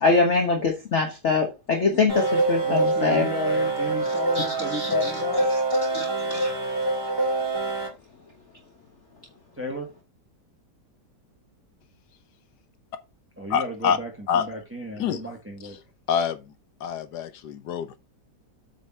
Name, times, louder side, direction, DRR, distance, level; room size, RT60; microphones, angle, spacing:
voice 1, 0.0-3.3 4.3-5.1 5.9-6.5, left 4 dB, 45° left, 1.4 m, -24 dB
sound 1, 2.1-7.9, right 2 dB, 10° left, 3.7 m, -25 dB
voice 2, 2.6-5.5 9.6-9.9 13.4-15.8, left 1 dB, 10° right, 1.6 m, -32 dB
voice 3, 13.5-14.0 14.3-14.4 15.0-15.2 16.1-16.4 16.8-18.0, left 7 dB, 70° left, 1.3 m, -25 dB
8.3 x 4.6 x 4.3 m
omnidirectional pair, 1.9 m